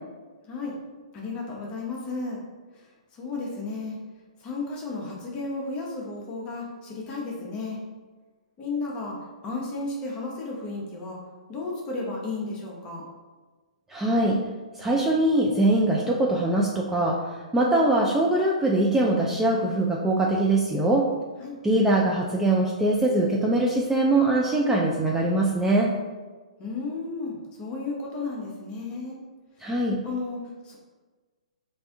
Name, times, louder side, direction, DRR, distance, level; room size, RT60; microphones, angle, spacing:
voice 1, 0.4-0.8 1.1-2.4 2.7-2.9 3.1-4.0 4.4-7.8 8.6-9.2 9.4-11.2 11.5-13.0 21.4-21.6 26.6-29.2 30.0-30.8, left 3 dB, 25° left, -2 dB, 0.8 m, -33 dB
voice 2, 13.9-14.4 14.8-21.1 21.6-25.9 29.6-30.0, right 1 dB, 10° right, -2 dB, 0.3 m, -22 dB
3.3 x 2.6 x 3.5 m, 1.3 s
figure-of-eight pair, 125°, 4 cm